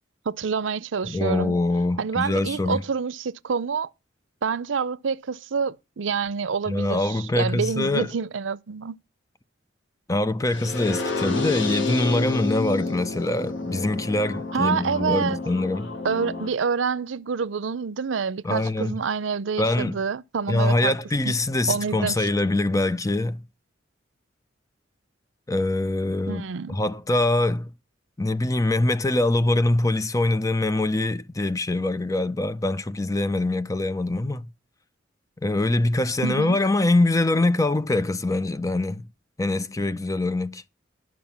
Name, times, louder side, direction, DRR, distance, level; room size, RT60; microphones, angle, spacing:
voice 1, 0.3-1.6 2.0-3.9 4.4-9.0 14.5-15.4 16.0-20.9 21.2-21.3 21.7-22.3 26.3-26.8 36.2-36.6, right 5 dB, 85° right, 0.6 m, -27 dB
voice 2, 1.0-2.8 6.7-8.1 10.1-15.9 18.4-18.9 19.6-20.0 20.5-23.4 25.5-26.4 26.7-27.7 28.2-34.5 35.4-39.1 39.4-40.6, left 2 dB, 20° left, 0.6 m, -24 dB
sound 1, 10.5-16.5, left 3 dB, 85° left, 1.8 m, -30 dB
12.0 x 6.1 x 7.2 m
head